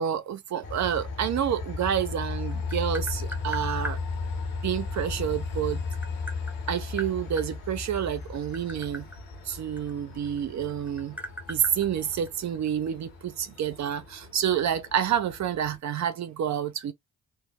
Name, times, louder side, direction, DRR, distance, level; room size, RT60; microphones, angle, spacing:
voice 1, 0.0-4.0 4.6-5.8 6.7-9.0 9.5-11.2 11.5-16.9, right 9 dB, 50° right, 0.8 m, -28 dB
Train, 0.6-15.8, left 4 dB, 70° left, 1.1 m, -36 dB
Tap, 2.1-4.0 5.3-7.5 8.2-10.4 10.7-12.7, equal, 5° right, 0.9 m, -39 dB
3.3 x 2.1 x 3.0 m
hypercardioid pair, 45°, 35 cm